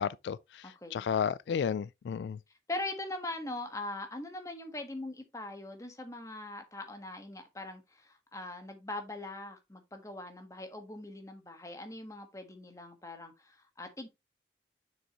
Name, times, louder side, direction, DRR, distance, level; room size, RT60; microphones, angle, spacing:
voice 1, 0.0-2.4, left 7 dB, 80° left, 0.3 m, -33 dB
voice 2, 0.6-1.0 2.7-14.1, left 2 dB, 20° left, 1.3 m, -41 dB
7.1 x 6.4 x 2.9 m
head